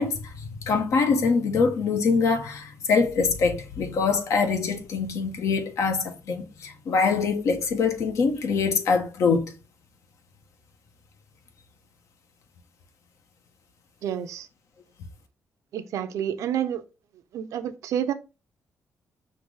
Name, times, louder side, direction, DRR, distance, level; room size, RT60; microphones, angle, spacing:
voice 1, 0.0-9.5, left 5 dB, 75° left, 0.9 m, -24 dB
voice 2, 14.0-14.5 15.7-16.8 17.3-18.1, right 9 dB, 90° right, 0.5 m, -29 dB
5.8 x 2.6 x 3.1 m
cardioid pair, 110°, 5 cm